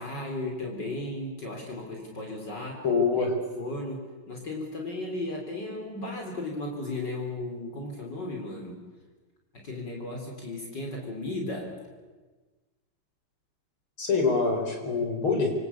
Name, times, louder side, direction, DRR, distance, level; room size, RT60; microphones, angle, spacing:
voice 1, 0.0-2.8 3.2-3.3 3.6-8.8 9.5-11.8, left 2 dB, 50° left, 0 dB, 4.5 m, -35 dB
voice 2, 2.8-3.3 14.0-15.5, left 4 dB, 70° left, 3 dB, 5.9 m, -25 dB
27.0 x 24.5 x 8.5 m, 1.3 s
omnidirectional pair, 2.4 m